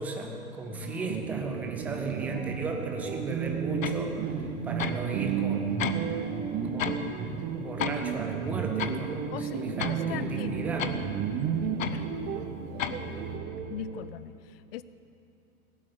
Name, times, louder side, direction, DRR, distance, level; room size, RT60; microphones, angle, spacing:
voice 1, 0.0-6.0 6.7-10.9, right 3 dB, 5° right, 3 dB, 0.3 m, -35 dB
voice 2, 0.7-1.2 9.3-10.6 11.9-12.0 13.7-14.8, left 11 dB, 40° left, 15 dB, 0.6 m, -41 dB
sound 1, 0.8-14.1, right 7 dB, 20° right, 0.8 m, -33 dB
sound 2, 1.1-13.8, right 6 dB, 40° right, 1.2 m, -41 dB
sound 3, 3.8-4.0 4.8-5.1 5.8-6.0 6.8-7.0 7.8-8.0 8.8-9.0 9.8-10.0 10.8-11.0 11.8-12.0 12.8-13.0, left 9 dB, 60° left, 1.0 m, -32 dB
17.5 x 8.5 x 8.4 m, 2.9 s
figure-of-eight pair, 110°, 44 cm